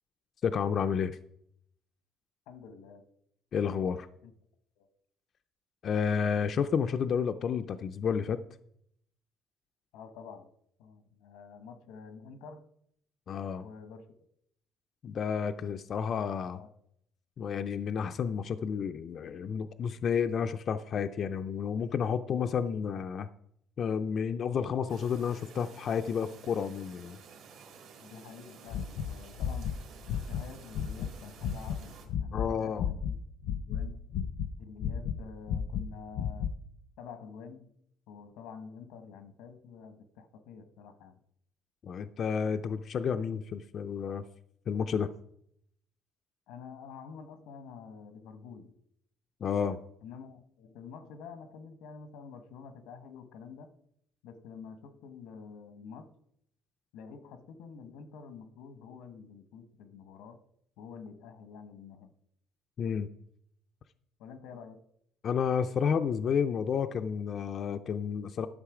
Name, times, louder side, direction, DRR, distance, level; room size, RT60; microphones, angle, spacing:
voice 1, 0.4-1.2 3.5-4.1 5.8-8.4 13.3-13.6 15.0-16.6 17.4-23.3 23.8-27.2 32.3-32.9 41.8-44.2 44.7-45.1 49.4-49.8 62.8-63.1 65.2-68.5, left 7 dB, 35° left, 0.4 m, -31 dB
voice 2, 2.5-3.1 4.2-4.3 4.8-4.9 9.9-10.5 10.8-12.7 13.6-14.1 16.4-16.7 28.0-29.8 30.3-33.1 33.6-34.1 34.6-36.5 37.0-37.7 38.1-41.2 46.5-48.7 50.0-53.7 54.2-56.1 56.9-60.4 60.8-62.1 64.2-64.8, left 6 dB, 90° left, 1.1 m, -48 dB
Chirp tweet, 24.9-32.1, right 5 dB, 65° right, 1.8 m, -53 dB
sound 1, 28.7-31.1 31.4-31.8 32.1-33.2 33.4-34.5 34.8-36.6, left 8 dB, 70° left, 0.6 m, -33 dB
11.5 x 6.4 x 4.9 m
cardioid pair, 170°, 0 cm